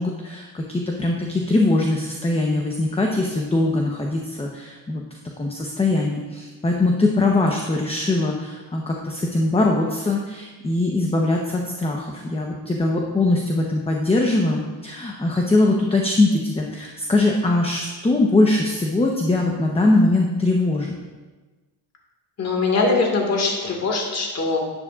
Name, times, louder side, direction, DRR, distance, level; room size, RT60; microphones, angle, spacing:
voice 1, 0.0-5.0 5.4-20.9, left 2 dB, 15° left, 0 dB, 0.9 m, -21 dB
voice 2, 22.4-24.6, left 3 dB, 40° left, 0 dB, 1.9 m, -22 dB
10.5 x 9.9 x 2.5 m, 1.3 s
cardioid pair, 115°, 40 cm